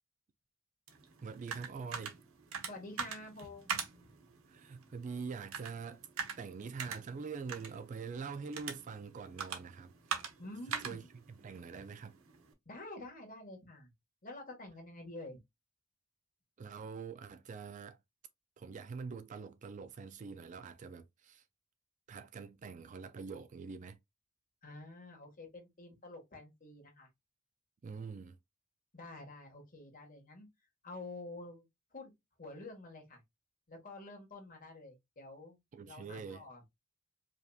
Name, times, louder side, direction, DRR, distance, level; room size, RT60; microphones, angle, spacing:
sound 1, 0.9-12.5, right 6 dB, 85° right, 0.9 m, -44 dB
voice 1, 1.2-2.2 4.5-6.1 6.4-10.2 10.8-12.2 16.6-18.0 18.6-21.4 22.1-24.0 27.8-28.4 35.7-36.4, right 5 dB, 35° right, 0.3 m, -44 dB
voice 2, 2.7-3.7 4.0-4.1 10.4-11.1 12.6-13.9 14.2-15.4 24.6-27.1 28.9-30.5 30.8-31.6 31.9-32.1 32.4-33.2 33.7-35.6 35.9-36.6, left 2 dB, 40° left, 1.5 m, -48 dB
4.9 x 2.8 x 2.3 m
head